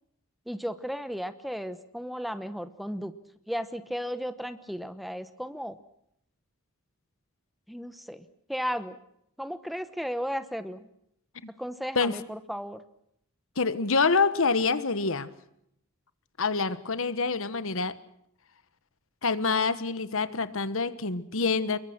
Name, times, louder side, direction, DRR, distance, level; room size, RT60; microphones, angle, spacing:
voice 1, 0.5-3.1 3.5-5.8 7.7-9.0 9.4-10.9 11.6-12.8, equal, ahead, 12 dB, 1.0 m, -35 dB
voice 2, 13.6-15.3 16.4-18.0 19.2-21.8, left 4 dB, 65° left, 14 dB, 1.3 m, -26 dB
26.5 x 22.5 x 6.0 m, 0.73 s
head